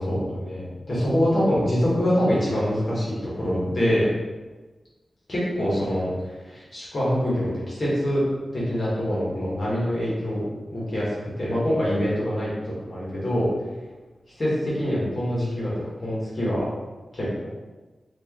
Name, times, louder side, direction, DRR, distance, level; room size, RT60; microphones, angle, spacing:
voice 1, 0.0-4.1 5.3-8.2 8.5-12.5 12.9-13.5 14.3-15.7 16.0-16.7 17.1-17.5, equal, 45° left, -7 dB, 1.3 m, -25 dB
4.4 x 2.5 x 3.0 m, 1.2 s
wide cardioid pair, 115°, 0 cm